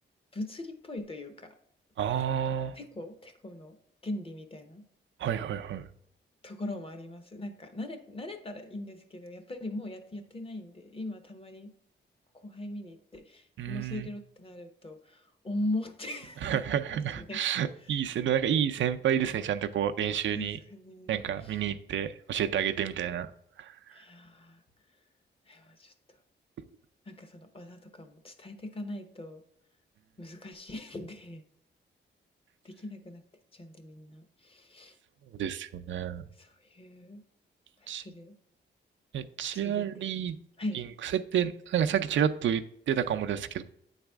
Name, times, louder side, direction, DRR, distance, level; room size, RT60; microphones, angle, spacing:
voice 1, 0.3-1.6 2.7-3.8 4.0-4.8 6.4-11.7 12.3-16.6 16.9-17.5 17.8-18.0 20.1-21.6 23.9-24.6 25.5-25.9 27.1-29.4 30.2-31.5 32.6-33.2 33.5-35.0 36.4-37.2 37.8-38.4 39.5-39.9 40.6-40.8, left 1 dB, 30° left, 0.8 m, -40 dB
voice 2, 2.0-2.8 5.2-5.9 13.6-14.1 16.4-20.6 21.1-23.3 23.6-24.0 35.4-36.2 37.9-38.0 39.1-40.4 40.7-43.6, right 9 dB, 80° right, 0.5 m, -30 dB
8.8 x 4.1 x 3.4 m
wide cardioid pair, 125°, 19 cm